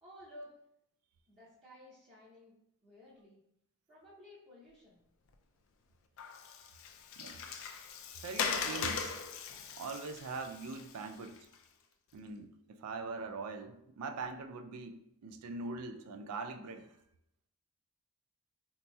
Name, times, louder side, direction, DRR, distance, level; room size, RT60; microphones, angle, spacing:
voice 1, 0.0-0.5 1.3-2.5 2.8-3.4 3.9-5.0, left 1 dB, 25° right, 0.6 m, -54 dB
Water, 6.2-11.5, left 6 dB, 60° left, 0.3 m, -39 dB
voice 2, 8.2-9.2 9.8-11.4 12.1-16.9, right 3 dB, 85° right, 0.3 m, -42 dB
4.0 x 2.8 x 2.2 m
head